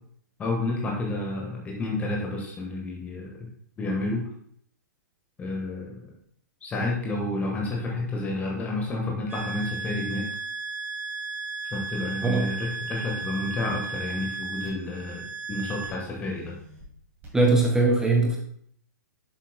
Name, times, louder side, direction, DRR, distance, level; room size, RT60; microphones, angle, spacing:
voice 1, 0.4-3.5 3.8-4.2 5.4-6.0 6.6-10.2 11.7-16.5, left 2 dB, 15° left, -1 dB, 1.4 m, -30 dB
sound 1, 9.3-16.8 17.2-17.3, right 4 dB, 20° right, 2.5 m, -35 dB
voice 2, 17.3-18.4, right 3 dB, 5° right, 0 dB, 0.7 m, -21 dB
9.1 x 7.3 x 2.2 m, 0.64 s
figure-of-eight pair, 115°, 10 cm